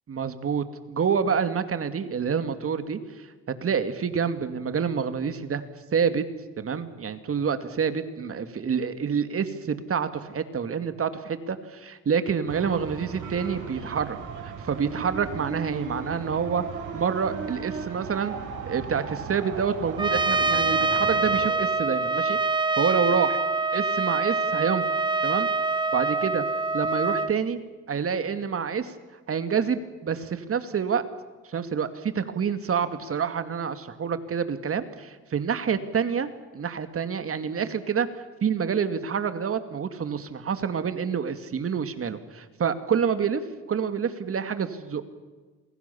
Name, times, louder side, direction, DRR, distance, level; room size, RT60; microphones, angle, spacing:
voice 1, 0.1-3.0 3.5-5.6 5.9-6.2 6.6-14.2 14.4-16.6 16.9-18.4 18.6-22.4 22.8-23.4 23.7-24.8 25.2-25.5 25.9-26.4 26.7-27.6 27.9-28.9 29.3-31.0 31.5-43.4 43.7-45.0, right 6 dB, 50° right, 10 dB, 2.5 m, -27 dB
sound 1, 12.5-21.6, right 5 dB, 80° right, 5.9 m, -36 dB
Trumpet, 20.0-27.3, right 3 dB, 15° right, 0.9 m, -25 dB
28.0 x 22.5 x 7.1 m, 1.3 s
cardioid pair, 90°, 30 cm